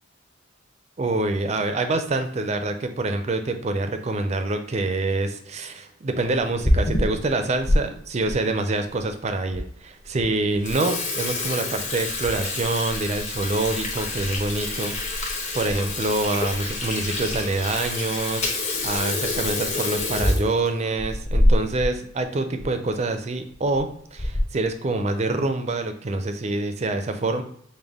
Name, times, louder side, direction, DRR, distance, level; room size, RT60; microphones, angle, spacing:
voice 1, 1.0-27.4, right 2 dB, 30° right, 7 dB, 0.4 m, -26 dB
Water tap faucet / Sink (filling or washing), 6.5-7.8 8.3-8.4 9.1-9.2 9.5-9.6 10.0-10.2 10.5-21.9 22.2-22.3 22.6-22.7 23.5-23.8 24.2-24.6, left 1 dB, 35° left, 0.8 m, -26 dB
5.2 x 2.2 x 3.5 m, 0.67 s
head